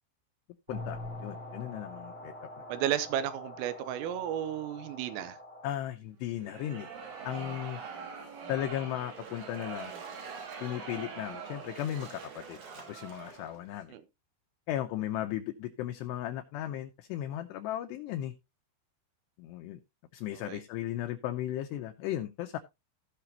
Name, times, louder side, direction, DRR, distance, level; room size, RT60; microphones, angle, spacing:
voice 1, 0.7-2.3 5.6-6.9 7.2-7.8 8.5-9.9 10.6-12.6 12.9-13.9 14.7-18.3 19.4-19.8 20.1-22.6, left 12 dB, 85° left, 2.4 m, -36 dB
sound 1, 0.7-5.7, left 2 dB, 30° right, 1.1 m, -44 dB
voice 2, 2.7-5.4 13.9-14.0 20.4-20.6, right 11 dB, 90° right, 3.4 m, -33 dB
sound 2, 6.4-13.6, right 5 dB, 75° right, 4.7 m, -44 dB
Splash splatter, 8.8-13.7, right 5 dB, 55° right, 2.0 m, -53 dB
16.5 x 5.9 x 2.8 m
omnidirectional pair, 5.7 m